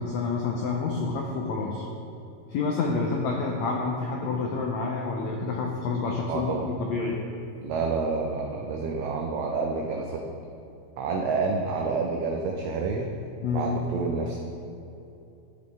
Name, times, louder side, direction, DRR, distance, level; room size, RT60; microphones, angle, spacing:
voice 1, 0.0-1.9 2.5-7.2 13.4-13.7, left 4 dB, 90° left, 0 dB, 1.5 m, -28 dB
voice 2, 6.3-6.7 7.6-10.2 11.0-13.1 13.5-14.4, right 4 dB, 85° right, 1 dB, 1.6 m, -28 dB
12.0 x 4.8 x 3.5 m, 2.8 s
omnidirectional pair, 3.8 m